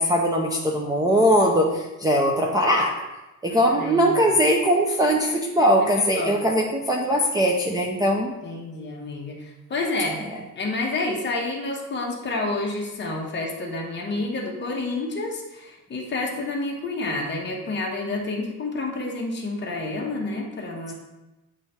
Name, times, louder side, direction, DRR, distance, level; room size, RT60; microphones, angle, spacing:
voice 1, 0.0-3.0 3.4-8.3, equal, 10° right, -1 dB, 0.4 m, -21 dB
voice 2, 3.4-4.3 5.6-6.4 8.4-10.3 10.6-20.9, left 2 dB, 35° left, -1 dB, 1.1 m, -29 dB
8.1 x 3.4 x 4.2 m, 1.0 s
cardioid pair, 170°, 33 cm